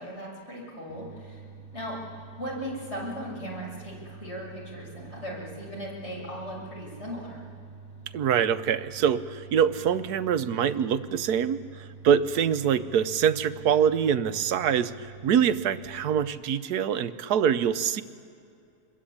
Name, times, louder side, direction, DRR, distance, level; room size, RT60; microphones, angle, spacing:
voice 1, 0.0-1.4 1.7-7.5, equal, 45° left, -3 dB, 7.2 m, -38 dB
sound 1, 0.9-16.3, right 4 dB, 15° left, 2.0 m, -47 dB
voice 2, 8.1-18.0, right 8 dB, 85° right, 11 dB, 1.4 m, -25 dB
26.0 x 22.0 x 8.6 m, 2.4 s
omnidirectional pair, 1.6 m